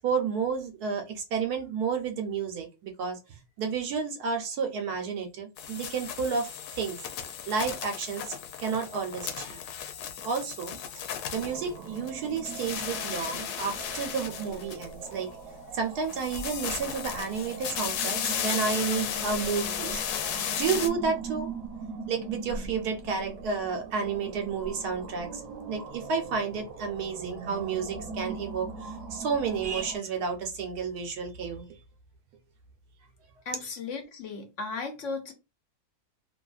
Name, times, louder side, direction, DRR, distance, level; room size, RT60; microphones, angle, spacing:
voice 1, 0.0-3.2 3.6-7.0 7.5-9.6 10.2-11.0 11.3-15.3 15.7-21.5 22.1-25.4 25.7-31.7, right 5 dB, 85° right, 1.3 m, -31 dB
sound 1, 5.6-12.1 12.4-15.2 16.0-20.9, left 8 dB, 90° left, 1.1 m, -35 dB
sound 2, 11.3-30.0, right 4 dB, 60° right, 1.0 m, -41 dB
voice 2, 33.4-35.3, left 4 dB, 65° left, 0.9 m, -36 dB
3.0 x 2.5 x 2.3 m
omnidirectional pair, 1.6 m